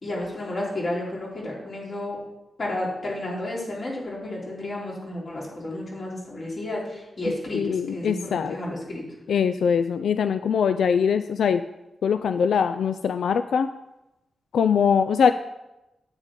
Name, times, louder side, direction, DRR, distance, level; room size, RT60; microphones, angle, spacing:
voice 1, 0.0-2.2 2.6-7.6 7.9-9.0, left 1 dB, 40° left, -4 dB, 3.1 m, -31 dB
voice 2, 7.5-8.6 9.3-11.6 12.0-13.7 14.5-15.3, left 7 dB, 90° left, 10 dB, 0.3 m, -22 dB
9.9 x 9.7 x 3.8 m, 0.95 s
wide cardioid pair, 170°, 0 cm